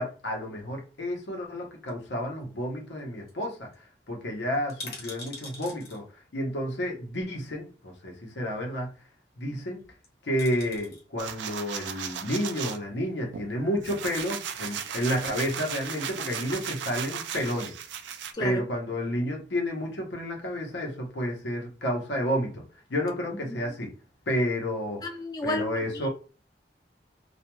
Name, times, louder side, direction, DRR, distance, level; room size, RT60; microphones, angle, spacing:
voice 1, 0.0-3.7 4.1-6.0 6.3-8.9 9.4-9.8 10.2-17.7 18.4-22.6 22.9-23.9 24.3-25.0 25.4-26.1, equal, 85° left, 0 dB, 0.8 m, -30 dB
sound 1, 1.9-2.7 3.0-3.1 3.3-3.4 3.7-3.8 4.5-6.0 7.2-7.3 9.8-10.1 10.4-11.0 12.2-12.6 13.2-13.9 14.2-14.3, left 2 dB, 55° left, 1.0 m, -44 dB
sound 2, 11.2-12.8 13.3-18.3, right 8 dB, 85° right, 0.4 m, -36 dB
voice 2, 25.0-25.7, left 2 dB, 20° left, 3 dB, 0.3 m, -32 dB
2.3 x 2.2 x 2.9 m, 0.36 s
head